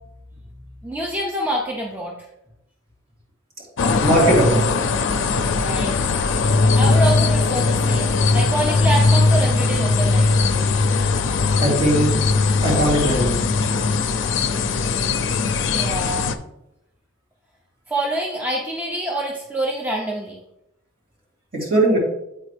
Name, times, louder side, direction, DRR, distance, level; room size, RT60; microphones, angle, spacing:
voice 1, 0.8-2.2 5.6-6.1 6.8-10.3 15.7-16.4 17.9-20.4, right 1 dB, 10° right, -1 dB, 0.5 m, -26 dB
sound 1, 3.8-16.4, left 3 dB, 70° left, 0.4 m, -19 dB
voice 2, 4.0-4.6 11.6-12.1 12.6-13.4 21.5-22.0, right 1 dB, 45° right, -5 dB, 2.5 m, -18 dB
8.3 x 4.1 x 3.2 m, 0.85 s
head